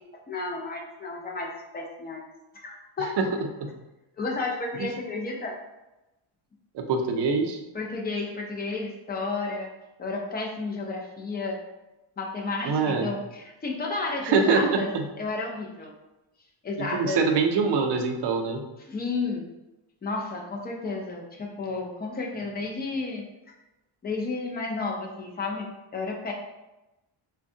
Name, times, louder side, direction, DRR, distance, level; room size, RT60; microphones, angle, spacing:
voice 1, 0.3-2.2 2.5-3.1 4.2-5.5 7.7-9.7 10.0-11.6 12.2-14.9 15.2-15.9 16.6-17.2 18.8-19.5 20.0-23.2 24.0-26.3, left 3 dB, 20° left, 0 dB, 0.3 m, -32 dB
voice 2, 6.7-7.6 12.6-13.1 14.2-15.1 16.8-18.6, right 4 dB, 55° right, 4 dB, 0.5 m, -24 dB
3.4 x 2.2 x 2.6 m, 0.99 s
cardioid pair, 140°, 50 cm